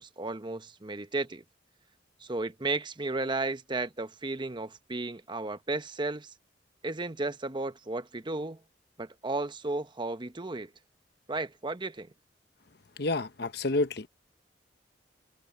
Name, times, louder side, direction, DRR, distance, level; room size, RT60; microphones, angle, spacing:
voice 1, 0.0-1.4 2.2-6.3 6.8-8.6 9.0-10.7 11.3-12.1, right 2 dB, 25° right, 0.9 m, -34 dB
voice 2, 13.0-14.1, left 2 dB, 60° left, 1.0 m, -29 dB
head